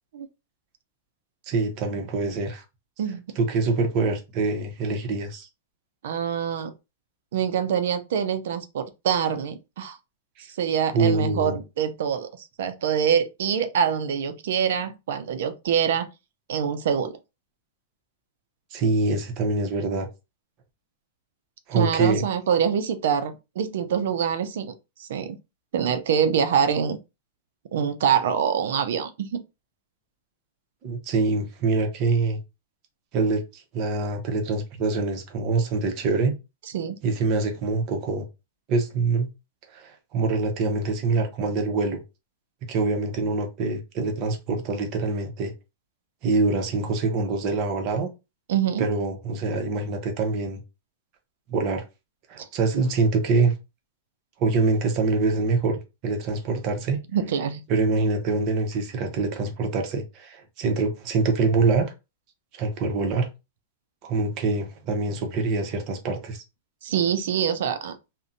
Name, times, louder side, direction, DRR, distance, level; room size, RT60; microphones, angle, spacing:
voice 1, 1.5-2.6 3.4-5.5 10.4-10.5 10.9-11.6 18.7-20.1 21.7-22.2 30.8-32.4 33.1-36.3 37.0-38.3 38.7-39.3 39.7-42.0 42.7-45.5 46.2-48.1 48.8-50.6 51.5-51.8 52.3-53.5 54.4-57.0 57.7-61.9 62.5-63.3 64.0-66.4, right 3 dB, 40° right, 0.7 m, -25 dB
voice 2, 6.0-6.7 7.3-10.0 10.5-16.1 16.5-17.2 21.7-24.7 25.0-25.4 25.7-27.0 27.7-29.4 36.7-37.0 48.5-48.9 52.4-52.5 57.1-57.6 66.8-68.0, right 8 dB, 70° right, 0.4 m, -25 dB
2.6 x 2.1 x 2.5 m
hypercardioid pair, 135°, 0 cm